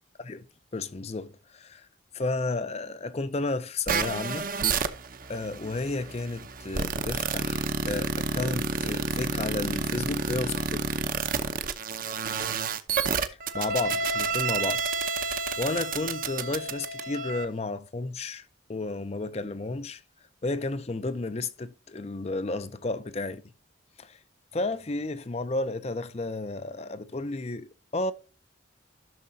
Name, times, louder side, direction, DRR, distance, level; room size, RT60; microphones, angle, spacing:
voice 1, 0.7-1.9 2.1-4.5 5.3-10.9 13.5-20.0 20.4-23.4 24.0-24.2 24.5-28.1, left 2 dB, 30° left, 0.5 m, -32 dB
sound 1, 3.9-17.5, right 4 dB, 45° right, 0.7 m, -30 dB
12.5 x 6.6 x 2.7 m
head